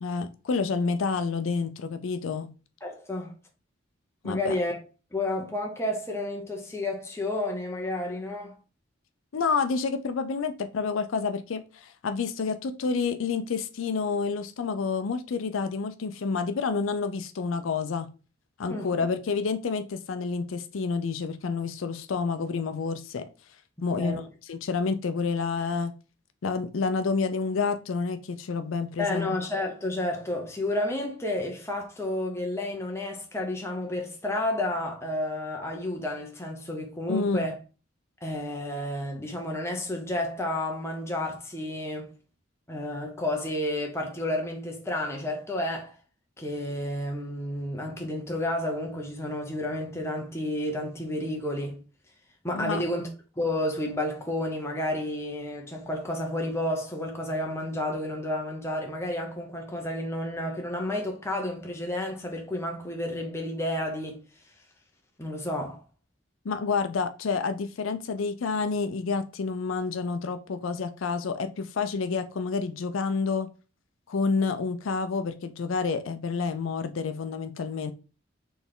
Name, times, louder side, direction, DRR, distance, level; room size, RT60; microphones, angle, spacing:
voice 1, 0.0-2.5 4.2-4.5 9.3-18.1 18.6-23.2 23.8-24.2 24.5-25.9 26.4-29.4 37.1-37.5 52.5-52.8 66.4-73.5 74.1-77.9, left 4 dB, 80° left, 0.4 m, -29 dB
voice 2, 2.8-3.3 4.2-4.8 5.1-8.6 18.7-18.9 23.8-24.2 29.0-37.5 38.2-42.1 42.7-45.9 46.4-51.8 52.4-53.1 53.4-64.2 65.2-65.8, left 1 dB, 15° left, 0.8 m, -31 dB
4.2 x 3.4 x 3.7 m
head